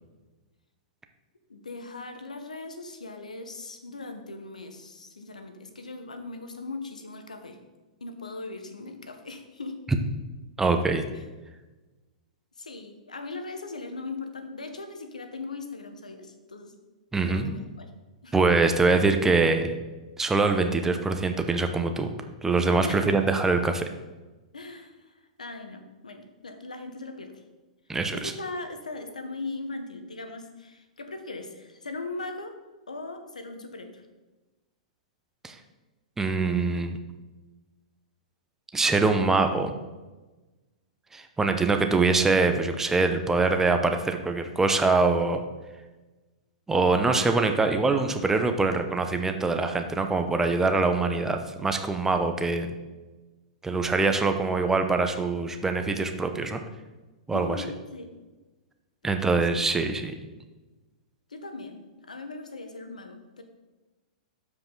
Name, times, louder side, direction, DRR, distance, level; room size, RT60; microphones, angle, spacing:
voice 1, 1.5-7.6 8.0-9.8 11.1-11.2 12.6-16.7 17.3-17.9 18.2-18.3 22.8-23.3 24.5-27.4 28.1-32.6 32.9-34.0 57.3-58.1 59.0-59.7 61.3-63.4, left 3 dB, 85° left, 7 dB, 1.1 m, -39 dB
voice 2, 10.6-11.0 17.1-17.5 18.3-19.8 20.2-22.1 22.4-23.9 27.9-28.3 35.4-35.6 36.2-36.9 38.7-39.7 41.1-45.4 46.7-52.7 53.6-56.6 57.3-57.6 59.0-60.1, right 3 dB, 10° right, 6 dB, 0.8 m, -24 dB
13.0 x 5.0 x 3.9 m, 1.2 s
hypercardioid pair, 110°, 4 cm